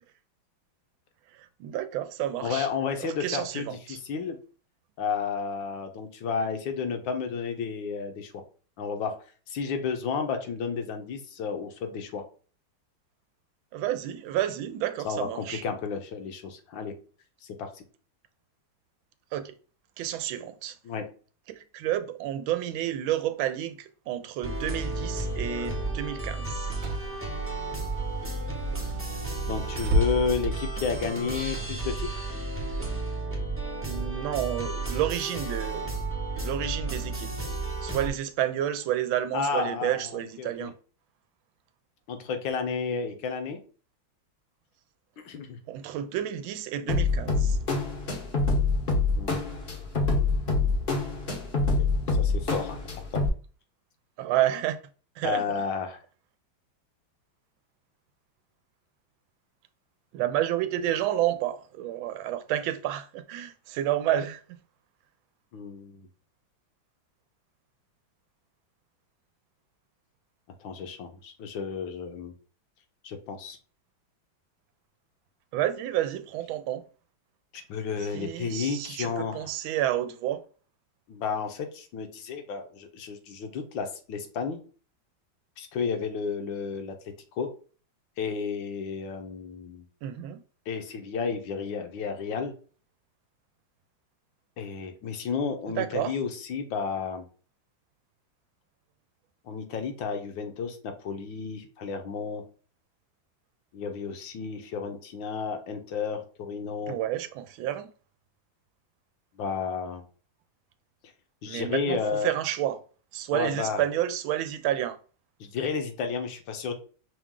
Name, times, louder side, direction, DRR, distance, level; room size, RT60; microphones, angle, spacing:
voice 1, 1.4-2.7 3.0-4.0 13.7-15.6 19.3-19.5 20.0-20.8 21.5-26.7 33.8-35.9 36.4-37.3 37.8-40.7 45.7-47.6 54.2-54.8 55.2-55.4 60.1-64.6 75.5-76.8 78.0-80.4 90.0-90.4 95.7-96.1 106.9-107.9 111.4-112.8 113.1-115.0, right 12 dB, 85° right, 1.4 m, -30 dB
voice 2, 2.4-4.4 5.0-8.4 8.8-9.2 9.5-12.2 15.0-16.9 17.4-17.8 20.8-21.1 29.5-32.2 39.3-40.7 42.1-43.6 45.2-45.6 49.1-49.4 52.1-52.8 53.1-53.2 55.2-56.0 65.5-66.1 70.6-72.3 73.0-73.6 77.5-79.5 81.1-84.6 85.6-86.9 87.3-87.5 88.2-89.8 90.7-92.5 94.6-97.2 99.4-102.4 103.7-107.0 109.4-110.0 111.4-112.3 113.3-113.8 115.4-116.8, left 5 dB, 75° left, 1.5 m, -32 dB
sound 1, 24.4-38.1, right 2 dB, 15° right, 0.5 m, -32 dB
Car / Engine, 24.4-32.8, equal, 60° right, 1.0 m, -35 dB
sound 2, 46.9-53.3, left 3 dB, 45° left, 0.7 m, -26 dB
6.0 x 2.4 x 3.6 m
omnidirectional pair, 2.1 m